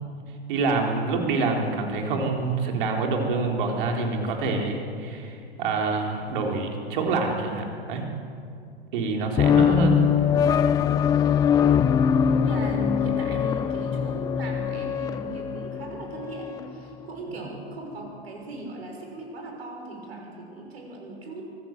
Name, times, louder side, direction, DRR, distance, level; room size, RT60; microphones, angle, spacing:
voice 1, 0.5-8.0 8.9-10.0, right 3 dB, 50° right, 2 dB, 4.1 m, -26 dB
sound 1, 9.4-16.7, left 8 dB, 10° left, 0.4 m, -22 dB
voice 2, 11.6-21.5, right 1 dB, 65° right, 1 dB, 6.1 m, -38 dB
23.5 x 15.0 x 8.0 m, 2.4 s
figure-of-eight pair, 100°, 33 cm